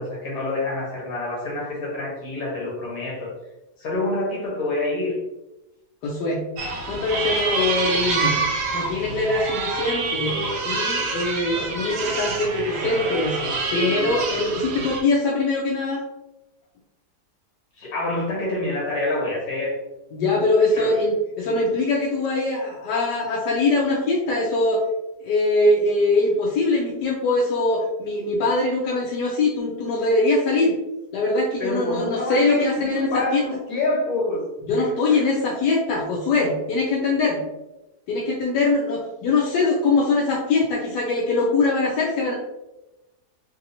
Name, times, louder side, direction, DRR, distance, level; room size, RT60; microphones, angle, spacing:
voice 1, 0.0-3.3 3.8-5.2 12.2-12.5 13.4-14.2 17.8-19.7 20.7-20.9 31.6-34.4 34.8-35.4, left 2 dB, 65° left, -3 dB, 1.6 m, -27 dB
voice 2, 6.0-6.4 6.9-8.3 8.7-10.4 10.7-13.4 13.7-16.0 20.1-24.8 25.2-30.7 31.1-33.4 34.7-37.4 38.1-42.3, left 2 dB, 85° left, -3 dB, 1.2 m, -22 dB
sound 1, 6.6-15.0, right 3 dB, 85° right, 1.3 m, -27 dB
3.3 x 2.7 x 2.7 m, 0.97 s
omnidirectional pair, 1.8 m